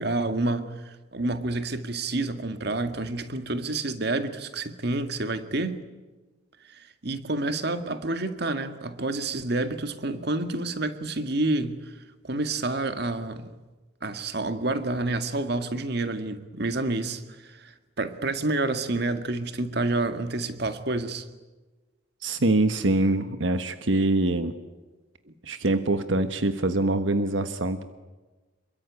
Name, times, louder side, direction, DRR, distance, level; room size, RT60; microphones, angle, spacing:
voice 1, 0.0-5.9 6.7-11.8 12.2-13.5 14.0-21.2, right 2 dB, 60° right, 9 dB, 1.9 m, -29 dB
voice 2, 22.2-24.5 25.4-27.8, right 2 dB, 85° right, 9 dB, 1.3 m, -24 dB
27.0 x 22.5 x 9.5 m, 1.2 s
head